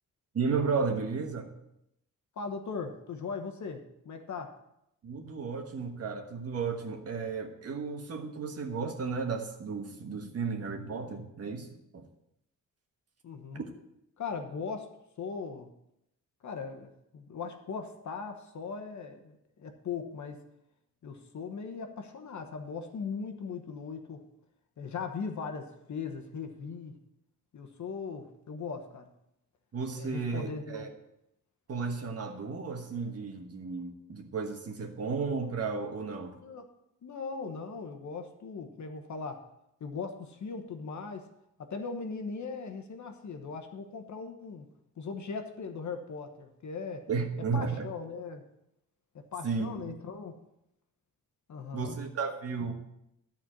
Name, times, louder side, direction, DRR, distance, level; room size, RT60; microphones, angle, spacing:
voice 1, 0.3-1.5 5.0-11.7 11.9-12.1 13.5-13.6 29.7-30.9 31.7-36.4 47.1-47.9 49.4-49.9 51.7-52.7, right 5 dB, 50° right, 4 dB, 1.4 m, -33 dB
voice 2, 2.4-4.5 13.2-13.6 14.2-15.7 16.4-20.4 21.0-24.2 24.8-27.0 27.5-29.1 29.9-30.9 36.3-36.6 37.0-39.5 39.8-41.3 41.6-44.6 45.0-47.1 47.5-48.4 49.1-50.3 51.5-52.0, left 5 dB, 60° left, 5 dB, 1.1 m, -39 dB
12.5 x 4.5 x 7.4 m, 0.82 s
wide cardioid pair, 165°, 32 cm